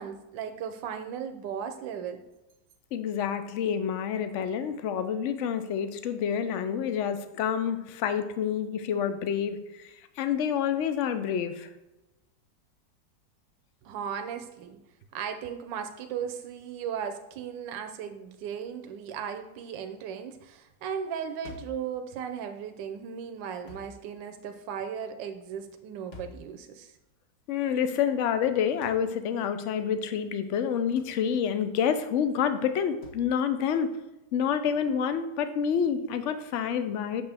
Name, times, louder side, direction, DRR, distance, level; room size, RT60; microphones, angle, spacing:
voice 1, 0.0-2.2 13.8-14.8 15.1-26.9, right 7 dB, 85° right, 6 dB, 1.4 m, -36 dB
voice 2, 2.9-9.9 10.2-11.7 27.5-33.9 34.3-37.2, left 8 dB, 65° left, 10 dB, 0.7 m, -28 dB
sound 1, 21.4-21.9 23.7-24.0 26.1-26.5 28.8-29.1 31.0-31.2 33.0-33.3, left 3 dB, 40° left, 1.1 m, -46 dB
8.0 x 6.4 x 3.4 m, 0.97 s
omnidirectional pair, 1.9 m